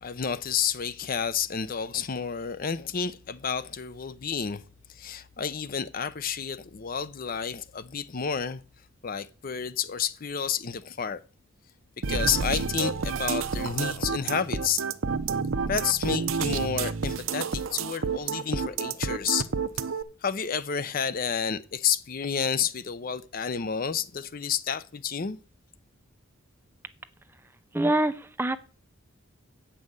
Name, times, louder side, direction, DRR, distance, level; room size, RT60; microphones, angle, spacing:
voice 1, 0.0-4.6 4.9-8.6 9.0-11.2 12.1-14.8 15.7-19.5 20.2-25.4, left 7 dB, 45° left, 0.5 m, -30 dB
sound 1, 12.0-20.0, right 5 dB, 70° right, 0.6 m, -29 dB
voice 2, 27.7-28.6, right 1 dB, 10° right, 0.5 m, -25 dB
8.5 x 5.5 x 7.8 m
head